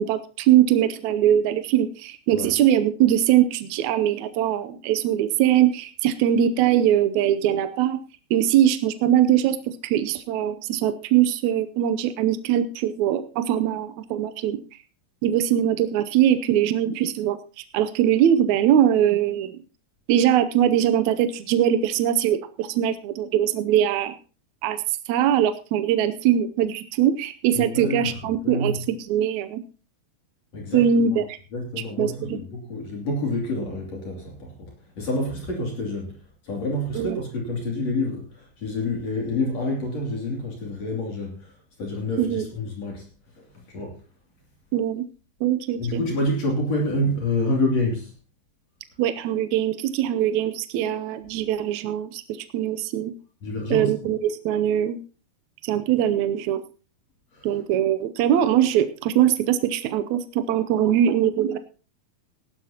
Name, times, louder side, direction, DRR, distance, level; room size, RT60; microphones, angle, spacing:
voice 1, 0.0-8.0 8.3-9.6 9.8-14.6 15.2-17.4 17.7-19.6 20.1-24.2 24.6-29.6 30.7-31.4 32.0-32.4 36.9-37.2 42.2-42.5 44.7-45.0 45.4-46.0 49.0-53.1 53.7-55.0 55.6-56.6 57.4-61.6, right 10 dB, 80° right, 11 dB, 1.7 m, -22 dB
voice 2, 27.5-28.2 28.4-28.8 30.5-31.2 31.5-34.7 35.0-36.1 36.4-41.5 41.8-43.1 43.4-44.0 45.8-48.1 53.4-53.9 57.3-57.5, left 1 dB, 50° left, -1 dB, 3.7 m, -28 dB
17.5 x 12.0 x 2.9 m, 0.36 s
omnidirectional pair, 4.2 m